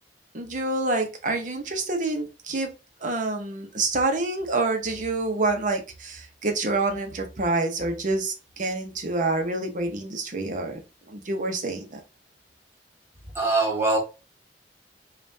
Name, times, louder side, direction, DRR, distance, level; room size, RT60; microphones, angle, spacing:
voice 1, 0.3-2.7 3.0-10.8 11.1-12.0, right 2 dB, 50° right, 0.8 m, -27 dB
voice 2, 13.3-14.0, right 2 dB, 15° right, 1.3 m, -22 dB
5.3 x 2.5 x 2.7 m
head